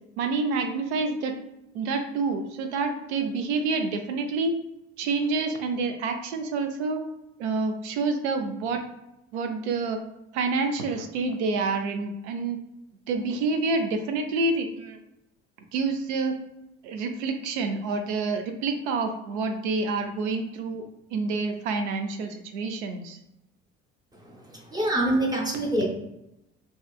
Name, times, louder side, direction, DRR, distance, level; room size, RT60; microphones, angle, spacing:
voice 1, 0.2-1.4 1.7-4.5 5.0-7.0 7.4-8.8 9.3-10.0 10.3-12.6 13.1-15.0 15.7-16.4 16.8-20.8 21.1-23.2, right 3 dB, 70° right, 5 dB, 0.5 m, -28 dB
voice 2, 24.1-25.9, right 1 dB, 10° right, 0 dB, 0.7 m, -26 dB
2.8 x 2.3 x 2.3 m, 0.86 s
figure-of-eight pair, 55°, 36 cm